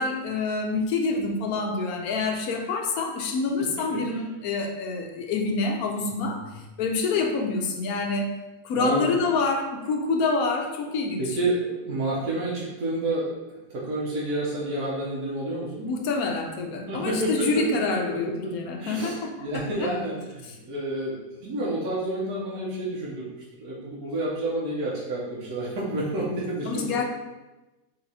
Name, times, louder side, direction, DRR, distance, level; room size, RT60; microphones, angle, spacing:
voice 1, 0.0-6.4 6.8-8.3 8.6-11.2 15.8-19.9 26.7-27.0, left 3 dB, 70° left, 2 dB, 0.9 m, -27 dB
voice 2, 3.6-4.2 6.1-6.5 7.9-8.0 8.7-9.2 11.2-13.3 13.7-15.9 16.9-17.6 18.0-18.5 18.8-27.0, right 1 dB, 65° right, -7 dB, 1.4 m, -30 dB
3.9 x 2.9 x 4.0 m, 1.1 s
omnidirectional pair, 1.9 m